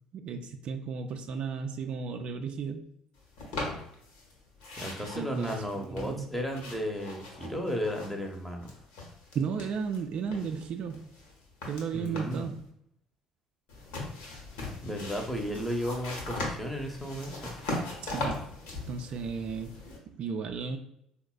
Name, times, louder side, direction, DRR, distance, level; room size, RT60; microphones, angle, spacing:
voice 1, 0.1-2.8 5.1-6.3 9.3-11.1 11.7-12.6 18.0-20.8, right 6 dB, 50° right, 5 dB, 0.3 m, -34 dB
sound 1, 3.4-4.3 4.6-8.4 8.6-10.0 10.3-12.5 13.7-20.0, left 2 dB, 70° left, 0.8 m, -39 dB
voice 2, 4.8-8.7 11.9-12.5 14.8-17.5, equal, 5° left, 2 dB, 0.7 m, -34 dB
3.9 x 2.1 x 2.3 m, 0.72 s
figure-of-eight pair, 55°, 2 cm